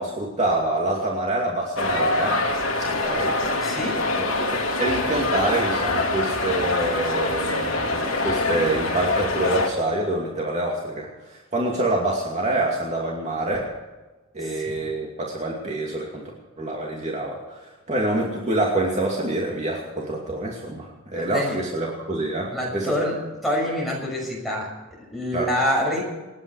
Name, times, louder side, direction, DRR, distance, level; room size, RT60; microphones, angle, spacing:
voice 1, 0.0-2.4 2.8-3.4 4.4-13.7 14.3-16.2 16.6-22.9 25.3-25.5, right 2 dB, 35° right, -2 dB, 2.5 m, -26 dB
sound 1, 1.8-9.7, left 2 dB, 70° left, 2.9 m, -24 dB
voice 2, 3.6-4.1 14.4-14.7 21.1-21.6 22.5-26.1, left 1 dB, ahead, -2 dB, 6.3 m, -27 dB
28.5 x 9.7 x 4.8 m, 1.2 s
head